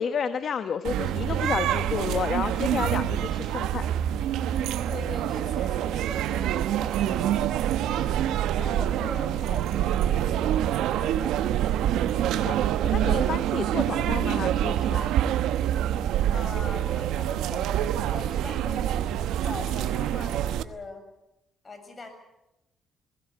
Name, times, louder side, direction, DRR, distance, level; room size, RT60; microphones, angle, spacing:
voice 1, 0.0-3.9 12.2-15.2, left 7 dB, 55° left, 10 dB, 1.1 m, -31 dB
sound 1, 0.8-20.6, right 11 dB, 90° right, 1.0 m, -26 dB
voice 2, 4.9-8.3 8.6-11.4 16.3-21.0 21.6-22.1, left 3 dB, 35° left, 7 dB, 6.9 m, -42 dB
21.0 x 17.0 x 9.6 m, 0.91 s
cardioid pair, 90°, 0 cm